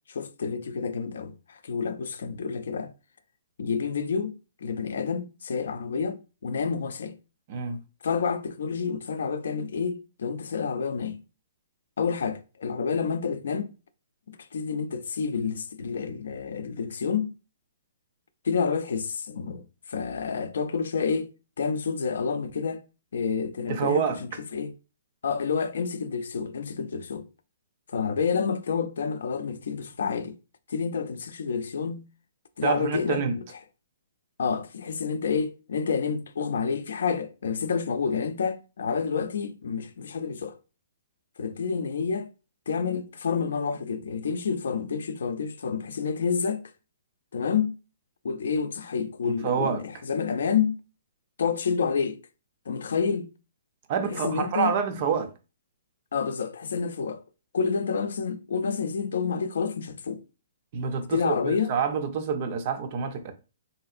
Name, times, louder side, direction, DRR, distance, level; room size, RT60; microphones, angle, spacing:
voice 1, 0.1-2.9 3.6-7.2 8.0-11.2 12.0-13.7 14.3-17.3 18.4-21.3 21.6-22.8 23.1-24.1 24.5-24.7 25.2-27.2 27.9-30.4 30.7-32.1 32.6-33.4 34.4-40.6 41.4-42.3 42.7-46.6 47.3-47.8 48.2-50.8 51.4-52.2 52.7-53.3 54.0-54.8 56.1-57.2 57.5-60.2 61.1-61.8, left 6 dB, 70° left, 0.4 m, -29 dB
voice 2, 23.7-24.2 32.6-33.4 49.2-49.8 53.9-55.3 60.7-63.3, right 6 dB, 30° right, 0.4 m, -27 dB
3.5 x 2.7 x 2.4 m
hypercardioid pair, 170°, 0 cm